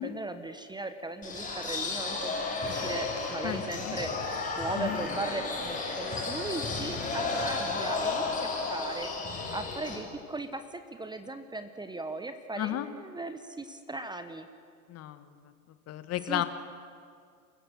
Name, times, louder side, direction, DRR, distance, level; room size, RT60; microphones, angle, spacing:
voice 1, 0.0-14.5 16.2-16.4, right 2 dB, 10° right, 10 dB, 1.0 m, -38 dB
sound 1, 1.2-10.0, left 3 dB, 15° left, 5.7 m, -33 dB
voice 2, 3.4-4.0 4.7-5.0 12.6-12.9 14.9-15.5 15.9-16.4, left 13 dB, 30° left, 12 dB, 1.2 m, -33 dB
28.0 x 15.0 x 7.6 m, 2.2 s
hypercardioid pair, 100°, 46 cm